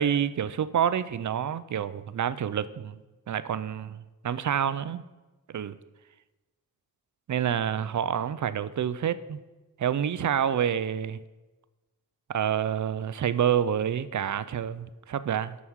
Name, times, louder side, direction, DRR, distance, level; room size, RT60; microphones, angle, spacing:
voice 1, 0.0-3.0 3.3-5.0 5.5-5.8 7.3-9.4 9.8-11.2 12.3-15.6, right 9 dB, 60° right, 14 dB, 0.5 m, -28 dB
9.8 x 6.1 x 7.2 m, 1.1 s
wide cardioid pair, 165°, 34 cm